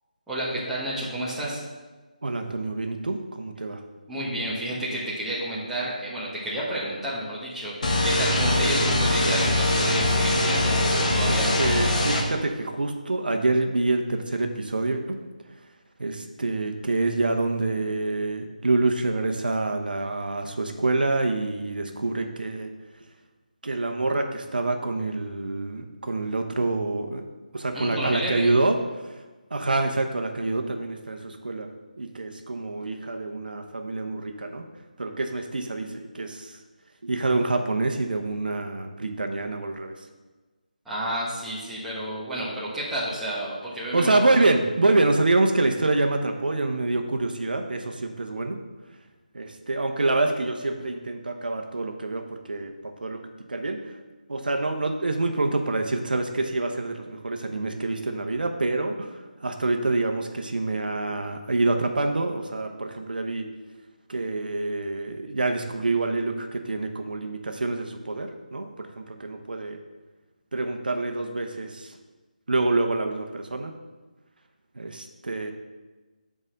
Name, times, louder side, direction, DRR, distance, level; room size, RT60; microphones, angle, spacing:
voice 1, 0.3-1.6 4.1-11.6 27.7-28.5 40.8-44.3, right 1 dB, 5° right, -10 dB, 1.1 m, -30 dB
voice 2, 2.2-3.8 11.3-15.2 16.0-22.7 23.6-27.2 27.5-28.8 29.5-31.7 32.0-34.6 35.0-36.6 37.0-39.9 43.9-48.6 49.3-53.2 53.5-53.8 54.3-63.5 64.1-69.8 70.5-71.9 72.5-73.7 74.8-75.5, right 2 dB, 80° right, 4 dB, 0.8 m, -26 dB
sound 1, 7.8-12.2, left 1 dB, 55° left, 1.4 m, -22 dB
5.4 x 4.9 x 6.4 m, 1.2 s
figure-of-eight pair, 165°, 5 cm